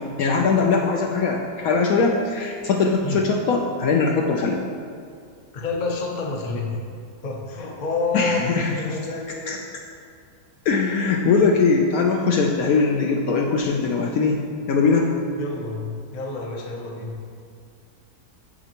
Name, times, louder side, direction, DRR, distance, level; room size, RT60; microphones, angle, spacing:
voice 1, 0.0-4.6 8.1-9.0 9.5-9.6 10.7-15.1, left 4 dB, 70° left, 0 dB, 0.9 m, -21 dB
voice 2, 5.5-6.8 7.2-8.4 8.8-9.5 15.4-17.2, left 3 dB, 45° left, -1 dB, 0.6 m, -28 dB
7.0 x 6.7 x 2.9 m, 2.2 s
omnidirectional pair, 1.8 m